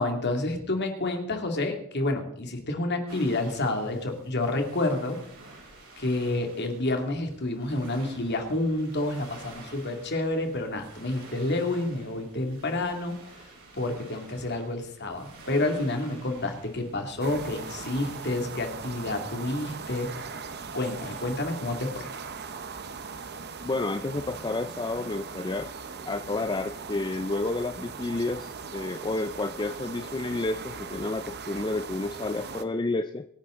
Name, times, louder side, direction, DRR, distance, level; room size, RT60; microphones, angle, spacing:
voice 1, 0.0-5.2 6.0-13.1 13.8-20.1 20.7-22.1, left 2 dB, 50° left, 4 dB, 2.4 m, -29 dB
sound 1, 3.1-21.2, right 2 dB, 75° right, 7.0 m, -50 dB
sound 2, 17.2-32.6, right 5 dB, 50° right, 1.0 m, -39 dB
voice 2, 23.6-25.7 26.1-33.3, left 2 dB, 20° left, 10 dB, 0.4 m, -30 dB
25.0 x 10.0 x 3.8 m, 0.77 s
head